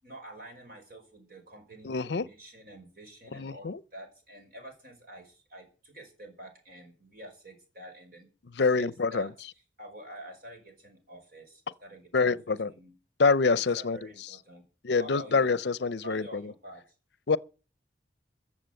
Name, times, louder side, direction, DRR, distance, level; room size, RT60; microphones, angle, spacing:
voice 1, 0.0-8.3 8.8-9.3 9.8-12.9 13.5-14.6 14.9-15.6 16.0-16.8, right 1 dB, 50° right, 5.1 m, -48 dB
voice 2, 1.8-2.2 3.3-3.8 8.6-9.3 12.1-12.7 13.2-14.0 14.8-16.5 17.3-17.4, left 4 dB, 70° left, 0.6 m, -26 dB
15.0 x 7.3 x 7.7 m
head